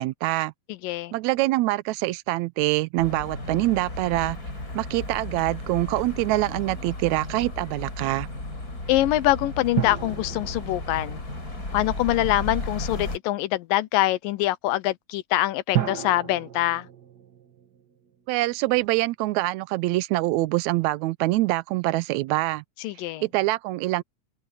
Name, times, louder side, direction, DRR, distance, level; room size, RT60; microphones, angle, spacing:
voice 1, 0.0-0.5 1.1-4.4 4.7-8.3 18.3-22.6 23.2-24.0, right 19 dB, 85° right, 1.6 m, -25 dB
voice 2, 0.7-1.1 8.9-11.2 11.7-16.9 22.8-23.2, left 15 dB, 85° left, 2.5 m, -24 dB
sound 1, 3.0-13.2, left 2 dB, 25° left, 6.0 m, -34 dB
sound 2, 9.8-12.4 15.7-18.4 18.6-18.7, right 11 dB, 55° right, 1.2 m, -33 dB
omnidirectional pair, 3.9 m